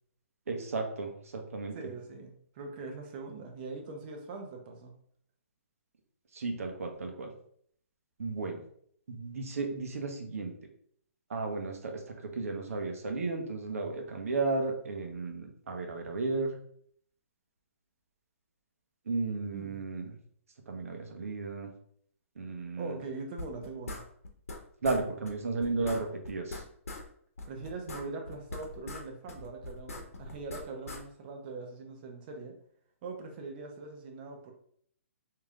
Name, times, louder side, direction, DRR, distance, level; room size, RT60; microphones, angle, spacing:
voice 1, 0.5-1.7 6.3-7.3 8.2-8.6 9.1-10.5 11.3-11.9 12.3-16.6 19.1-20.1 20.7-21.7 22.4-22.9 24.8-26.6, right 3 dB, 75° right, 3 dB, 0.9 m, -34 dB
voice 2, 1.7-4.9 19.5-19.8 22.8-24.0 27.4-32.6 33.0-34.5, right 3 dB, 40° right, 2 dB, 0.9 m, -42 dB
sound 1, 23.4-24.6 24.8-25.0 25.3-25.4 25.6-27.0 27.4-29.0 29.3-31.0, left 2 dB, 85° left, 0.9 m, -41 dB
3.2 x 2.9 x 3.6 m, 0.63 s
hypercardioid pair, 145°, 8 cm